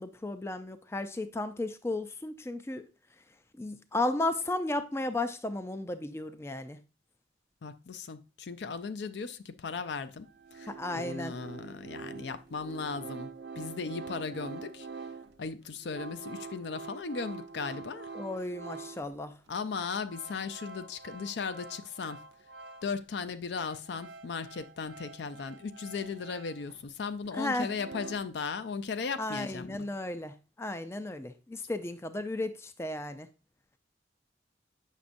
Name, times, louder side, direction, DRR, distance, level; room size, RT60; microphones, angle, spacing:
voice 1, 0.0-2.9 3.6-6.8 10.7-11.3 18.1-19.3 27.3-27.7 29.2-33.3, left 2 dB, 15° left, 0.4 m, -34 dB
voice 2, 7.6-10.3 10.5-14.9 15.4-18.1 19.5-22.2 22.8-29.9, left 5 dB, 70° left, 0.5 m, -37 dB
sound 1, 9.7-9.8 10.2-19.2 19.5-23.0 23.3-26.9 27.2-28.2, right 4 dB, 70° right, 0.6 m, -46 dB
8.2 x 6.1 x 2.5 m
head